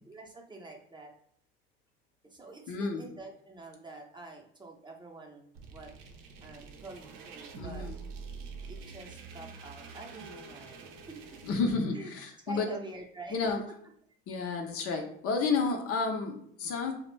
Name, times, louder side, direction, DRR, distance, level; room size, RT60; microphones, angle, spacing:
voice 1, 0.1-1.1 2.2-5.9 6.4-7.9 8.6-11.2 11.9-12.2 12.4-13.4, right 2 dB, 15° right, 0 dB, 0.6 m, -46 dB
voice 2, 2.7-3.1 7.6-8.0 11.4-12.8 13.3-13.6 14.3-16.9, left 4 dB, 50° left, 3 dB, 0.6 m, -31 dB
sound 1, 5.5-11.5, right 5 dB, 75° right, 0.6 m, -46 dB
2.4 x 2.1 x 3.1 m, 0.68 s
hypercardioid pair, 65°, 29 cm